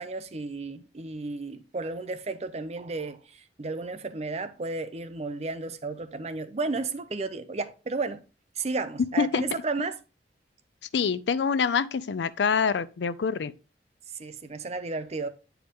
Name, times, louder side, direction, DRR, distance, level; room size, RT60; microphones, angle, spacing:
voice 1, 0.0-8.2 8.6-10.0 14.2-15.3, right 3 dB, 40° right, 0.6 m, -33 dB
voice 2, 10.9-13.5, left 6 dB, 80° left, 0.4 m, -25 dB
8.7 x 4.6 x 3.5 m
head